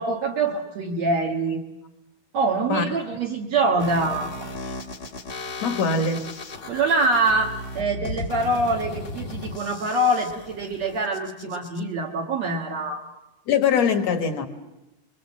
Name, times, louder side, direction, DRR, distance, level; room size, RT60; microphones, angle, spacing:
voice 1, 0.0-1.6 2.3-4.5 6.7-13.0, right 2 dB, 60° right, -1 dB, 2.7 m, -24 dB
sound 1, 3.8-11.8, left 2 dB, 40° left, 1.7 m, -36 dB
voice 2, 5.6-6.3 13.5-14.5, left 6 dB, 55° left, 6 dB, 2.7 m, -22 dB
29.5 x 22.5 x 7.4 m, 0.95 s
omnidirectional pair, 3.7 m